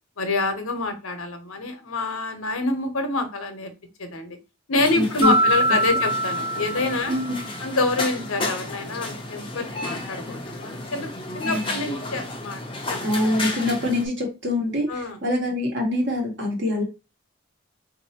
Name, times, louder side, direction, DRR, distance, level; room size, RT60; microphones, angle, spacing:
voice 1, 0.2-3.7 4.0-4.4 4.7-7.2 7.6-12.6 12.9-13.0 14.9-15.2, left 3 dB, 80° left, 6 dB, 0.9 m, -27 dB
sound 1, 4.8-14.1, left 2 dB, 25° left, 0.5 m, -33 dB
voice 2, 4.9-5.3 7.1-7.4 11.4-11.8 13.0-16.8, left 1 dB, 55° right, -1 dB, 1.2 m, -24 dB
Mallet percussion, 5.2-7.6, right 1 dB, 30° right, 0.5 m, -23 dB
3.9 x 2.6 x 2.8 m, 0.30 s
head